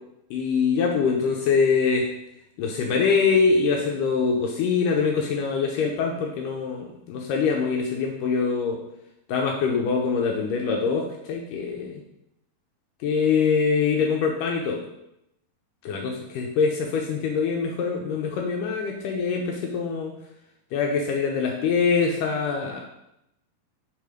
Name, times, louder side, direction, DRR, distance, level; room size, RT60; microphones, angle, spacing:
voice 1, 0.3-2.1 2.6-8.8 9.3-12.0 13.0-14.8 15.8-20.1 20.7-22.8, left 5 dB, 80° left, 0 dB, 2.3 m, -24 dB
8.7 x 3.7 x 4.9 m, 0.83 s
omnidirectional pair, 3.9 m